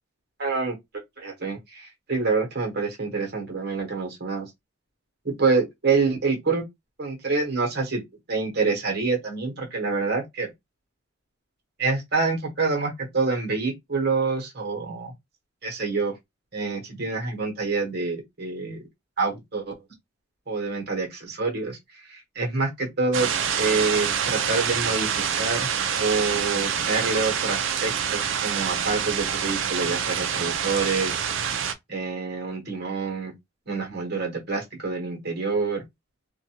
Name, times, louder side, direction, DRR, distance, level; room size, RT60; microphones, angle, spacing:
voice 1, 0.4-0.8 1.2-4.5 5.2-6.6 7.0-8.0 8.3-10.5 11.8-15.1 15.6-16.1 16.5-18.8 19.2-19.7 20.5-23.3 23.6-25.7 26.0-31.2 31.9-33.3 33.7-35.8, right 4 dB, 50° right, 1.1 m, -27 dB
sound 1, 23.1-31.7, right 8 dB, 65° right, 0.4 m, -26 dB
2.5 x 2.3 x 2.9 m
head